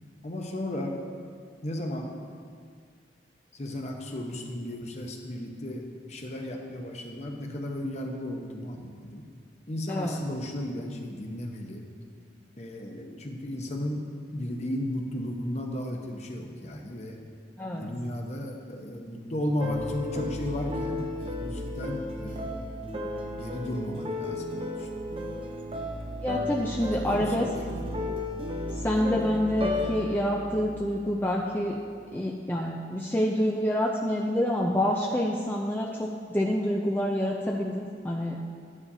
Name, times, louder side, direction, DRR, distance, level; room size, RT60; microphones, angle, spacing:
voice 1, 0.2-1.0 1.6-2.2 3.5-9.3 9.7-11.9 12.6-17.2 17.7-22.8 23.3-24.9 27.0-27.8, left 1 dB, 35° left, 2 dB, 0.9 m, -34 dB
voice 2, 9.9-10.2 17.6-17.9 26.2-27.5 28.7-31.8 32.1-38.3, equal, 10° left, -2 dB, 0.5 m, -27 dB
sound 1, 19.6-31.7, left 1 dB, 30° right, 0.6 m, -34 dB
12.5 x 9.8 x 2.7 m, 2.1 s
head